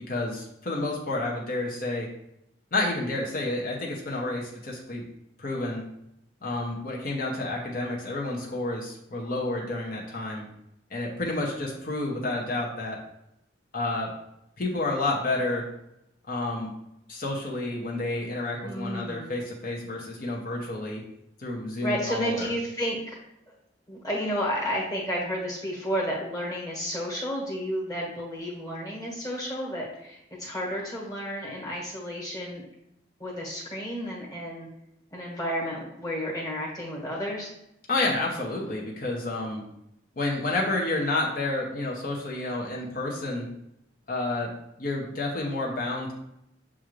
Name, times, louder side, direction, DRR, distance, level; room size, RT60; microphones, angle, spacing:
voice 1, 0.1-2.1 2.7-5.0 5.4-5.8 6.4-10.4 10.9-13.0 13.7-14.1 14.6-15.6 16.3-16.7 17.1-21.0 21.4-22.5 37.9-39.6 40.2-43.5 44.1-44.5 44.8-46.1, left 2 dB, 45° left, -2 dB, 0.8 m, -30 dB
voice 2, 18.6-19.3 21.8-23.2 23.5-23.6 23.9-32.6 33.2-34.7 35.1-37.5, equal, 20° left, -5 dB, 1.3 m, -31 dB
6.9 x 2.5 x 3.1 m, 0.81 s
head